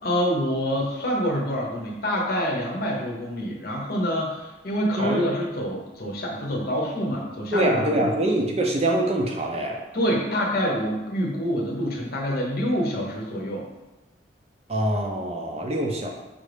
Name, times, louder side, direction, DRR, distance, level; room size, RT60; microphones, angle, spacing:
voice 1, 0.0-8.1 9.9-13.6, equal, 50° left, -2 dB, 0.8 m, -26 dB
voice 2, 5.0-5.3 7.5-9.8 14.7-16.1, right 1 dB, 30° right, 1 dB, 0.5 m, -24 dB
5.2 x 2.5 x 3.3 m, 1.1 s
head